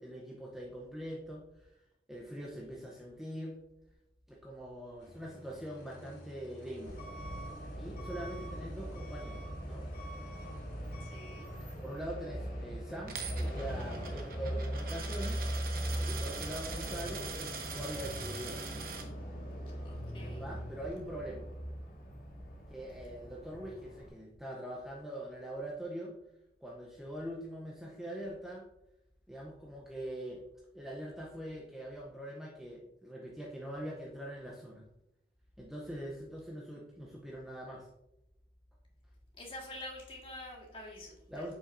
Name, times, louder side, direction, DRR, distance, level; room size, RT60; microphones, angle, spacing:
voice 1, 0.0-1.7 2.1-3.6 4.3-7.0 7.8-9.9 11.8-15.4 16.1-18.6 20.4-21.5 22.7-26.2 26.6-28.7 29.3-30.4 30.7-34.9 35.6-37.9 41.3-41.5, right 1 dB, ahead, -3 dB, 0.6 m, -43 dB
sound 1, 5.0-11.8, equal, 85° left, 2.4 m, -52 dB
Truck / Alarm, 6.9-24.1, equal, 55° left, 1.9 m, -40 dB
voice 2, 11.0-11.5 19.8-20.5 39.4-41.4, left 1 dB, 30° left, -2 dB, 1.6 m, -47 dB
Coin (dropping), 13.1-19.0, right 6 dB, 55° right, 0.9 m, -43 dB
7.0 x 5.6 x 2.5 m, 0.86 s
head